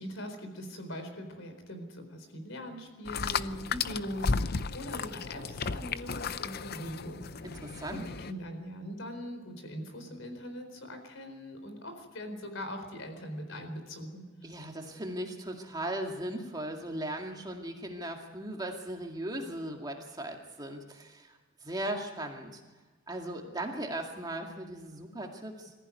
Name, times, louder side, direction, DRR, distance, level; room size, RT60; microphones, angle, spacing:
voice 1, 0.0-7.2 7.9-14.2, equal, 65° left, 8 dB, 4.3 m, -41 dB
sound 1, 3.1-8.3, left 5 dB, 45° left, 0.6 m, -34 dB
voice 2, 7.4-8.0 14.4-22.6 23.1-25.7, right 1 dB, 20° right, 2 dB, 2.2 m, -38 dB
22.5 x 15.0 x 9.5 m, 1.3 s
head